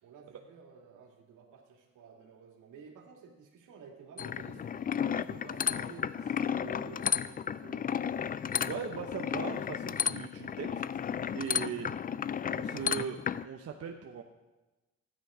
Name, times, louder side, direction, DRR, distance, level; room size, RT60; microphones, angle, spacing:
voice 1, 0.0-4.8 5.1-7.9 9.0-9.1, right 5 dB, 85° right, 1 dB, 2.4 m, -52 dB
sound 1, 4.2-13.4, left 8 dB, 30° left, 0.4 m, -33 dB
voice 2, 8.6-11.9 12.5-14.2, right 7 dB, 50° right, 3 dB, 1.0 m, -39 dB
13.0 x 9.6 x 5.0 m, 1.1 s
cardioid pair, 90°, 30 cm